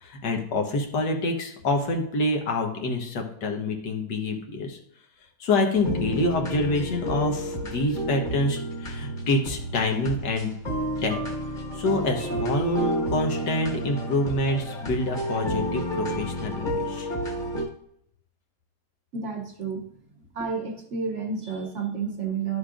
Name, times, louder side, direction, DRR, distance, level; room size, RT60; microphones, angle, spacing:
voice 1, 0.0-4.8 5.4-10.5 11.0-11.2 11.7-17.1, left 2 dB, 85° left, 2 dB, 1.8 m, -26 dB
sound 1, 5.8-17.6, equal, 30° left, 1.5 m, -31 dB
voice 2, 19.1-19.9 20.3-22.6, right 5 dB, 55° right, 2 dB, 1.0 m, -30 dB
11.5 x 6.4 x 2.5 m, 0.71 s
omnidirectional pair, 1.8 m